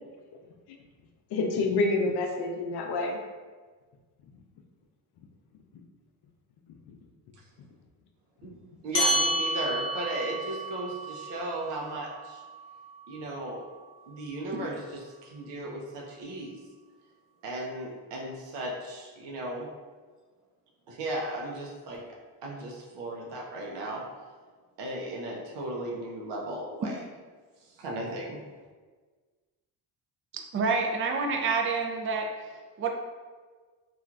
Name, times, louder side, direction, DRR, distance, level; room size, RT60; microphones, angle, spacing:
voice 1, 1.3-3.2 6.9-7.0, left 3 dB, 65° left, 3 dB, 0.6 m, -28 dB
voice 2, 8.8-12.4 13.1-13.7 14.1-16.6 17.4-19.7 20.9-22.0 22.4-24.0 24.8-27.0 27.8-28.4, right 1 dB, 80° right, -2 dB, 0.6 m, -36 dB
sound 1, 8.9-13.8, right 1 dB, 50° left, 1.0 m, -31 dB
voice 3, 30.5-32.3 32.8-32.9, right 4 dB, 30° right, 3 dB, 0.4 m, -27 dB
3.1 x 2.4 x 2.4 m, 1.4 s
cardioid pair, 80°, 42 cm